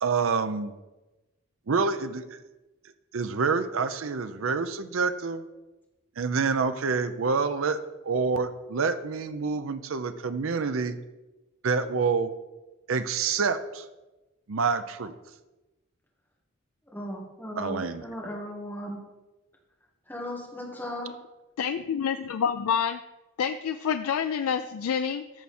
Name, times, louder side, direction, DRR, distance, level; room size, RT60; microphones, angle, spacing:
voice 1, 0.0-0.7 1.7-2.4 3.1-5.4 6.2-7.8 8.0-11.0 11.6-12.3 12.9-13.9 14.5-15.1 17.6-18.1, right 5 dB, 70° right, 11 dB, 0.5 m, -27 dB
voice 2, 16.9-19.0 20.1-21.1, left 1 dB, 10° left, -3 dB, 1.7 m, -36 dB
voice 3, 21.6-23.0 23.4-25.4, left 7 dB, 85° left, 9 dB, 0.4 m, -28 dB
14.0 x 4.7 x 4.3 m, 1.1 s
head